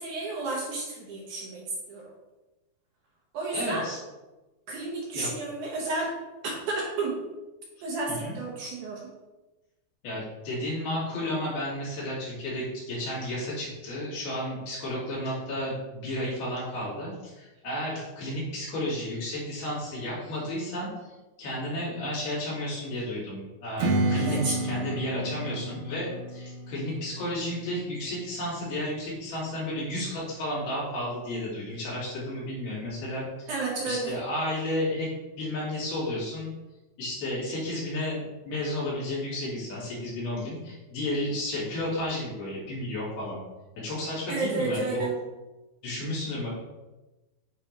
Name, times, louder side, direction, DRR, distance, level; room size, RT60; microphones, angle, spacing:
voice 1, 0.0-2.0 3.3-3.9 4.7-6.2 6.4-7.2 7.8-9.0 24.1-24.6 33.5-34.1 44.3-45.1, right 3 dB, 65° right, -3 dB, 2.2 m, -31 dB
voice 2, 3.5-4.0 5.1-5.3 8.1-8.3 10.0-21.1 21.4-33.5 33.9-35.1 35.4-36.5 37.0-43.4 43.8-45.1 45.8-46.5, left 1 dB, 75° left, -7 dB, 4.5 m, -32 dB
Strum, 23.8-29.0, right 2 dB, 90° right, 2.8 m, -31 dB
8.5 x 4.5 x 3.2 m, 1.1 s
omnidirectional pair, 4.4 m